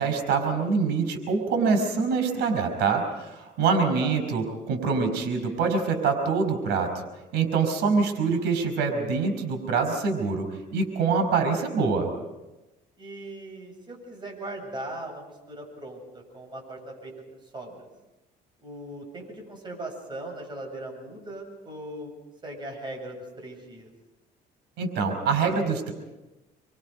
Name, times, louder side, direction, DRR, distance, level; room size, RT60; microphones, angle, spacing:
voice 1, 0.0-6.9 7.3-10.4 10.7-12.1 24.8-25.9, right 5 dB, 85° right, 6 dB, 5.1 m, -25 dB
voice 2, 13.0-17.1 17.5-17.9 18.6-22.1 22.4-23.9, right 1 dB, 25° right, 1 dB, 8.0 m, -39 dB
27.5 x 23.5 x 5.3 m, 1.0 s
cardioid pair, 110°, 17 cm